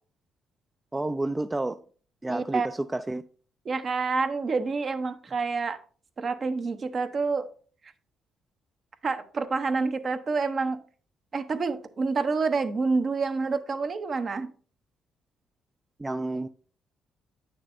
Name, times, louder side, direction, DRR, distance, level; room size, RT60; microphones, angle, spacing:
voice 1, 0.9-1.8 2.2-3.2 16.0-16.5, right 2 dB, 15° right, 0.3 m, -30 dB
voice 2, 2.3-2.7 3.6-5.8 6.2-7.5 9.0-10.8 11.3-14.5, right 4 dB, 45° right, 0.8 m, -28 dB
9.0 x 6.6 x 2.6 m
cardioid pair, 90°, 0 cm